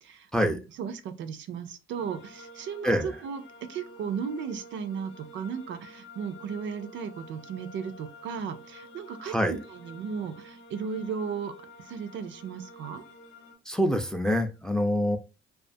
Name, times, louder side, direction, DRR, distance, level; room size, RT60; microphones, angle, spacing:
voice 1, 0.0-3.4 3.7-11.5 11.8-13.0, right 6 dB, 70° right, 0.4 m, -35 dB
sound 1, 1.9-13.5, left 1 dB, 80° left, 0.7 m, -50 dB
voice 2, 9.2-9.6 13.7-15.2, equal, 5° left, 0.3 m, -25 dB
2.4 x 2.3 x 2.5 m
cardioid pair, 90°, 20 cm